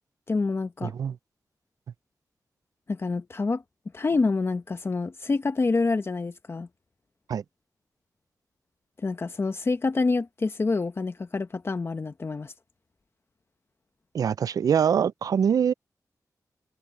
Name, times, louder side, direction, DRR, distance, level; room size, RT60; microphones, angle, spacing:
voice 1, 0.3-0.9 2.9-3.6 3.9-6.7 9.0-12.5, left 3 dB, 40° left, 0.9 m, -27 dB
voice 2, 0.8-1.2 7.3-7.4 14.1-15.7, right 7 dB, 65° right, 0.3 m, -24 dB
wide cardioid pair, 95°, 7 cm